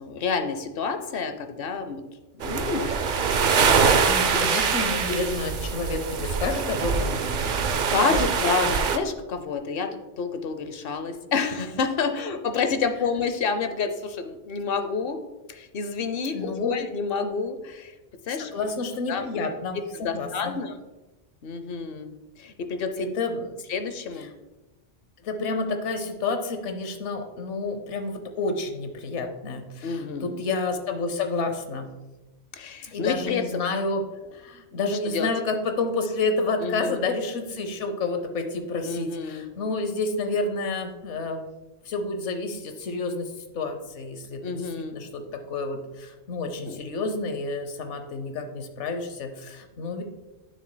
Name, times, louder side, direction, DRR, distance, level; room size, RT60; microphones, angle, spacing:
voice 1, 0.0-2.0 2.4-2.9 4.3-4.7 5.1-5.3 7.7-9.9 10.2-15.2 15.5-17.9 18.3-18.5 19.1-19.4 19.9-20.7 21.4-22.1 22.4-23.1 23.7-24.3 29.8-30.4 32.5-33.4 35.1-35.3 36.6-37.0 38.9-39.5 44.4-45.0 46.7-46.8, left 5 dB, 60° left, 8 dB, 0.8 m, -29 dB
sound 1, 2.4-9.0, right 5 dB, 55° right, 0.6 m, -23 dB
voice 2, 4.1-8.2 16.3-16.7 18.5-20.5 23.0-23.6 24.2-24.3 25.2-31.9 32.8-34.0 34.3-41.5 41.8-50.0, left 3 dB, 80° left, 6 dB, 1.2 m, -30 dB
11.0 x 6.4 x 2.2 m, 1.1 s
omnidirectional pair, 1.2 m